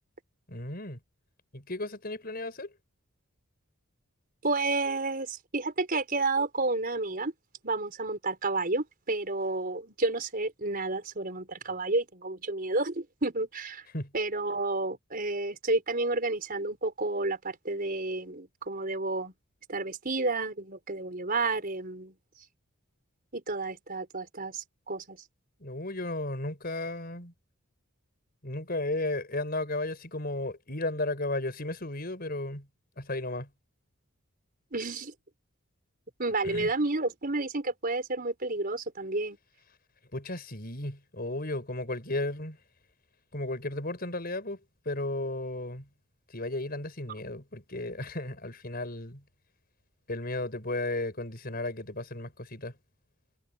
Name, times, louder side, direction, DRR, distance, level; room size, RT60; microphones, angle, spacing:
voice 1, 0.5-1.0 1.5-2.7 13.9-14.1 25.6-27.3 28.4-32.7 33.0-33.5 36.4-36.7 40.1-42.6 43.3-44.6 44.9-45.9 46.3-49.2 50.1-52.7, left 2 dB, 45° left, 5.6 m, -34 dB
voice 2, 4.4-7.3 7.6-13.8 14.1-19.3 19.7-22.1 23.3-25.2 34.7-35.1 36.2-39.4, right 2 dB, 40° right, 4.9 m, -31 dB
head